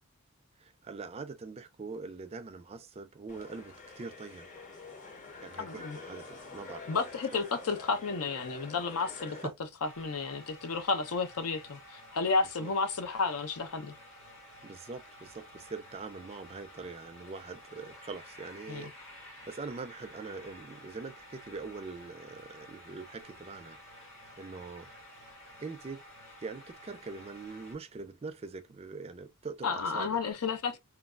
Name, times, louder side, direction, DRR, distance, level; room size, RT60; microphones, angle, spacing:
voice 1, 0.6-4.5 5.4-7.0 7.3-7.4 9.4-9.6 12.6-12.7 14.6-18.9 19.2-24.9 25.6-26.0 26.4-30.2, right 4 dB, 25° right, 0.3 m, -43 dB
sound 1, 3.3-9.4, left 4 dB, 35° left, 0.7 m, -47 dB
voice 2, 5.6-6.0 6.9-9.4 9.8-13.9 18.7-18.9 29.6-30.8, left 4 dB, 80° left, 0.6 m, -32 dB
sound 2, 9.8-27.7, left 1 dB, 60° left, 2.0 m, -52 dB
3.2 x 2.3 x 2.3 m
head